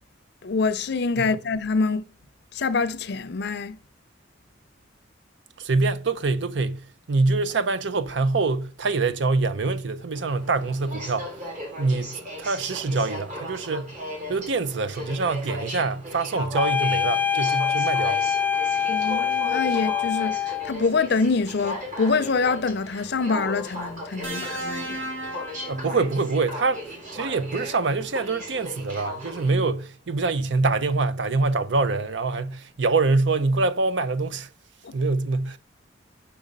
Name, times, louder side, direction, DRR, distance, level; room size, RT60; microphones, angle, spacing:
voice 1, 0.4-2.0 2.5-3.8 18.9-25.0 34.8-34.9, left 4 dB, 60° left, 0.5 m, -25 dB
voice 2, 5.6-11.3 11.8-13.9 14.3-18.2 25.7-34.5 34.9-35.6, right 3 dB, 70° right, 0.6 m, -25 dB
Aircraft, 10.1-29.5, equal, 40° right, 2.4 m, -37 dB
sound 1, 16.5-20.7, left 8 dB, 10° left, 0.4 m, -24 dB
sound 2, 24.2-26.5 27.8-28.0, right 1 dB, 85° right, 2.0 m, -35 dB
5.9 x 5.0 x 5.2 m
head